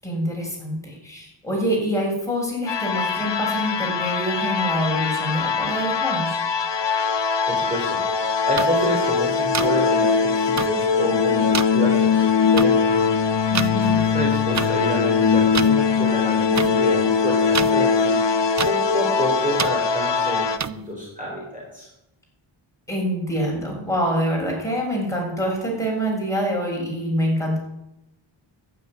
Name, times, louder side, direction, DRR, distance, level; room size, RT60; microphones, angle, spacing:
voice 1, 0.0-6.4 13.5-14.0 22.9-27.6, equal, 5° left, -3 dB, 7.1 m, -25 dB
sound 1, 2.7-20.6, left 5 dB, 60° left, 1.1 m, -21 dB
voice 2, 7.5-8.0 8.5-13.0 13.7-18.2 18.6-21.9, equal, 15° right, -3 dB, 4.4 m, -29 dB
sound 2, 8.6-8.7 9.5-9.7 10.6-10.7 11.5-11.6 12.6-12.7 13.5-13.7 14.5-14.7 15.5-15.7 16.6-16.7 17.5-17.7 18.6-18.7 19.6-19.7 20.6-20.7, right 6 dB, 35° right, 0.6 m, -25 dB
12.0 x 10.5 x 10.0 m, 0.87 s
wide cardioid pair, 115°, 49 cm